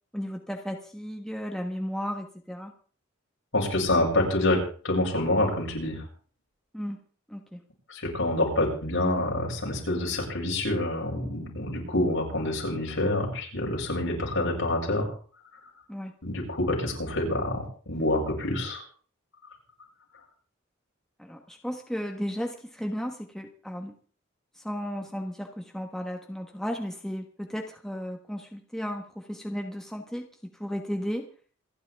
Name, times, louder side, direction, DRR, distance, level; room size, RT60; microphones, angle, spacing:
voice 1, 0.1-2.7 6.7-7.0 7.3-7.6 15.9-16.1 21.2-23.9 24.6-30.3 30.6-31.3, equal, 5° left, 2 dB, 1.3 m, -34 dB
voice 2, 3.5-6.0 7.9-15.1 16.2-18.8, left 1 dB, 70° left, -1 dB, 7.1 m, -27 dB
27.5 x 10.5 x 3.6 m, 0.43 s
head